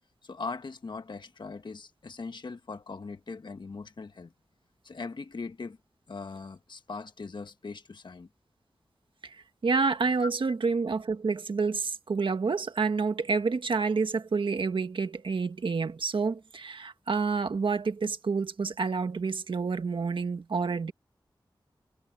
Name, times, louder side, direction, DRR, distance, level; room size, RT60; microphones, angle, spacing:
voice 1, 0.2-4.3 4.8-5.8 6.1-8.3 10.2-10.3, left 4 dB, 65° left, 1.4 m, -40 dB
voice 2, 9.2-20.9, right 4 dB, 75° right, 1.7 m, -28 dB
wide cardioid pair, 90°, 9 cm